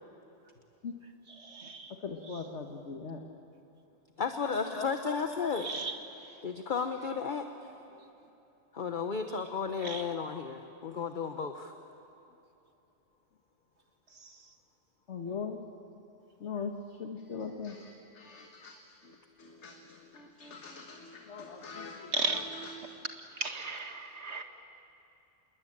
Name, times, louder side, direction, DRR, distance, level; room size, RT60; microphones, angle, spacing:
voice 1, 1.3-2.0 2.2-2.5 5.5-6.4 9.8-10.1 14.1-14.5 22.1-22.7 23.3-24.4, right 3 dB, 65° right, 6 dB, 2.0 m, -37 dB
voice 2, 2.0-3.2 4.4-5.5 15.1-15.6 16.4-16.7 17.0-18.8 19.0-23.0, left 5 dB, 70° left, 3 dB, 1.7 m, -41 dB
voice 3, 4.2-5.7 6.4-7.5 8.7-11.7, left 5 dB, 45° left, 6 dB, 1.1 m, -33 dB
27.5 x 21.5 x 8.8 m, 3.0 s
omnidirectional pair, 1.2 m